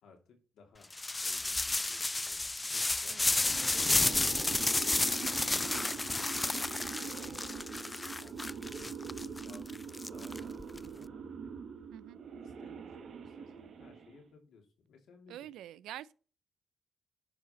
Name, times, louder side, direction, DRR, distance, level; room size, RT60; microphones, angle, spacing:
voice 1, 0.0-0.9 1.2-3.2 3.7-6.6 6.9-7.4 8.2-11.5 12.4-15.4, left 4 dB, 80° left, 2.8 m, -59 dB
sound 1, 0.9-10.8, left 2 dB, 20° left, 0.3 m, -32 dB
sound 2, 3.1-14.3, right 6 dB, 70° right, 1.3 m, -44 dB
voice 2, 15.3-16.1, right 12 dB, 90° right, 0.4 m, -46 dB
11.0 x 4.9 x 4.4 m
supercardioid pair, 60°, 0 cm